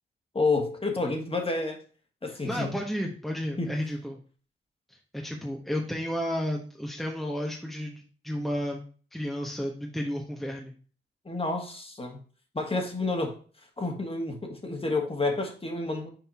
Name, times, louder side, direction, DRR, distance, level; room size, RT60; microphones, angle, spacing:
voice 1, 0.3-1.8 2.2-2.7 3.6-3.7 11.3-12.2 12.5-13.4 13.8-16.1, left 3 dB, 25° left, 3 dB, 1.8 m, -29 dB
voice 2, 2.4-4.2 5.1-8.8 9.1-10.7, equal, ahead, 0 dB, 1.2 m, -32 dB
5.9 x 4.2 x 4.2 m, 0.40 s
cardioid pair, 55°, 21 cm